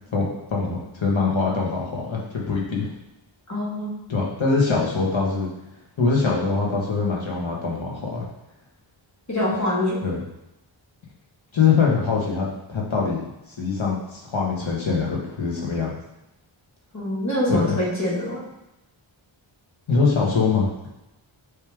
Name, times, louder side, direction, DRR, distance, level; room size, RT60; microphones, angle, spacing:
voice 1, 0.5-2.9 4.1-5.5 6.0-8.3 10.0-10.2 11.5-13.2 13.6-15.9 17.5-17.8 19.9-20.9, left 4 dB, 70° left, -3 dB, 1.6 m, -23 dB
voice 2, 3.5-3.9 9.3-10.0 16.9-18.5, left 1 dB, 35° left, -6 dB, 2.0 m, -24 dB
8.0 x 3.3 x 3.6 m, 0.94 s
wide cardioid pair, 100°, 47 cm